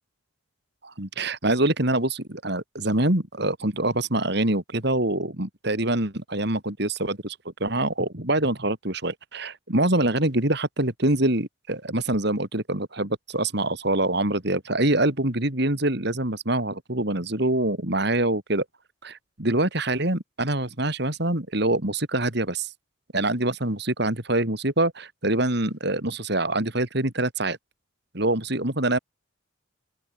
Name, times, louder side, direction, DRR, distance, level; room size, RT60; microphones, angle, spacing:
voice 1, 0.8-18.6 19.0-22.7 23.1-27.6 28.1-29.0, right 1 dB, 55° right, 3.0 m, -25 dB
open air
head